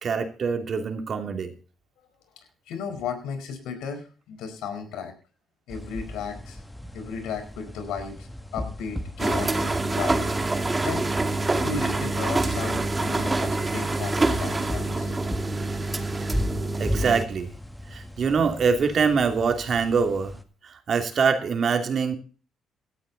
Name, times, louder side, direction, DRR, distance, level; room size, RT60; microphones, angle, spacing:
voice 1, 0.0-1.5 16.8-17.5 17.9-20.3 20.6-22.1, right 5 dB, 50° right, 6 dB, 2.9 m, -24 dB
voice 2, 2.7-5.1 5.7-6.6 6.9-10.3 10.8-11.1 11.6-15.2, left 6 dB, 90° left, 8 dB, 4.8 m, -35 dB
sound 1, 5.7-20.4, left 1 dB, 10° left, 2.0 m, -37 dB
sound 2, 9.2-17.2, right 2 dB, 20° right, 2.3 m, -26 dB
17.0 x 12.5 x 4.1 m, 0.37 s
cardioid pair, 90°, 0 cm